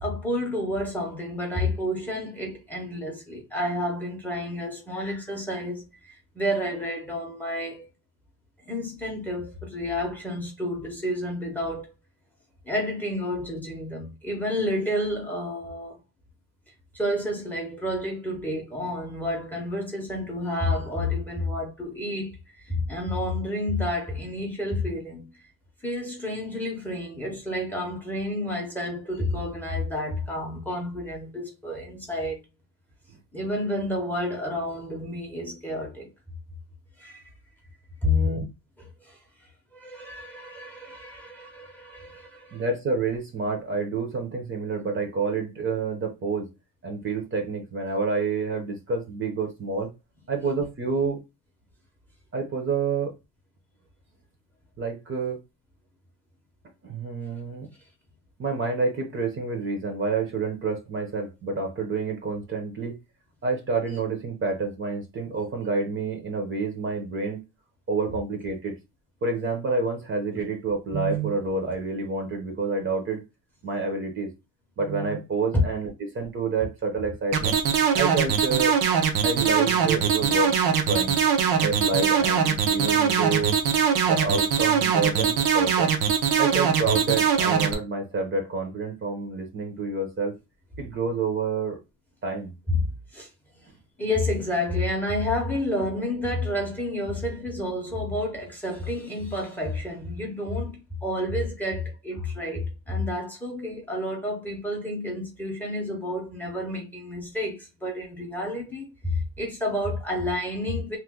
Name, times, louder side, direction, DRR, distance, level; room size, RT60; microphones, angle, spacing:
voice 1, 0.0-7.9 8.6-11.9 12.6-16.0 16.9-25.3 25.8-32.4 33.3-36.1 37.0-37.3 38.0-38.2 39.0-39.2 39.7-42.6 75.5-75.6 92.7-93.3 94.0-111.0, left 1 dB, 5° left, 0.6 m, -30 dB
voice 2, 38.0-38.5 42.5-46.5 46.8-49.9 50.3-51.2 52.3-53.1 54.8-55.4 56.8-57.7 58.4-63.0 63.4-67.4 67.9-68.8 69.2-73.2 73.6-74.3 74.8-77.6 78.0-78.8 79.2-80.6 80.9-81.2 81.6-83.6 84.0-85.9 86.4-90.4 90.8-91.8 92.2-92.5, right 4 dB, 35° right, 0.7 m, -28 dB
sound 1, 77.3-87.7, right 7 dB, 85° right, 0.8 m, -21 dB
3.0 x 2.1 x 3.5 m
cardioid pair, 165°, 37 cm